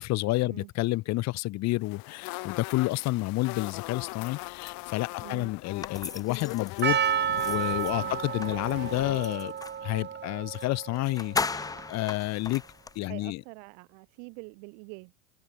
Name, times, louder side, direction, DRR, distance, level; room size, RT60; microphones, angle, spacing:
voice 1, 0.0-7.0 7.4-9.5 9.8-11.6 11.9-12.6 12.9-13.4, left 19 dB, 40° left, 0.9 m, -29 dB
sound 1, 1.8-9.2, left 30 dB, 55° left, 1.8 m, -41 dB
voice 2, 5.2-5.5 8.0-8.2 13.0-15.1, right 40 dB or more, 60° right, 2.8 m, -45 dB
sound 2, 5.8-9.9 10.5-10.7 11.0-13.0, left 4 dB, 10° left, 0.7 m, -37 dB
Percussion, 6.8-12.1, right 8 dB, 25° right, 3.0 m, -31 dB
supercardioid pair, 135°, 42 cm